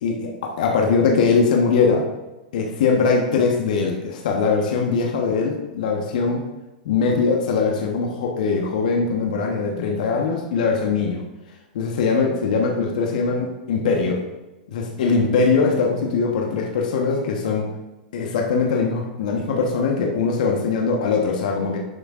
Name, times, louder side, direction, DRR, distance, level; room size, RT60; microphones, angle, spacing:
voice 1, 0.0-2.1 2.5-6.4 6.8-11.2 11.7-14.2 14.7-17.7 18.1-21.8, left 4 dB, 65° left, 1 dB, 1.2 m, -21 dB
11.0 x 6.7 x 2.5 m, 1.0 s
hypercardioid pair, 110°, 5 cm